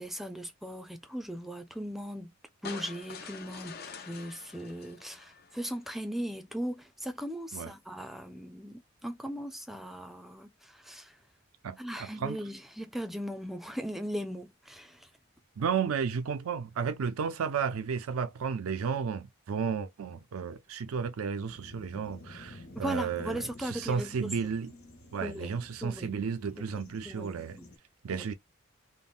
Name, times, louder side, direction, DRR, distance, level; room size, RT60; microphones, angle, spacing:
voice 1, 0.0-2.3 2.6-11.2 11.8-15.1 22.8-24.5 25.2-25.6 25.8-26.1 26.7-27.7 28.1-28.3, equal, ahead, 0.4 m, -38 dB
sound 1, 2.6-5.9, left 5 dB, 45° left, 0.6 m, -46 dB
voice 2, 11.6-12.4 15.6-24.7 25.1-27.6 28.0-28.3, right 6 dB, 85° right, 0.4 m, -33 dB
sound 2, 21.5-27.8, left 1 dB, 85° left, 1.1 m, -51 dB
3.6 x 2.1 x 2.4 m
head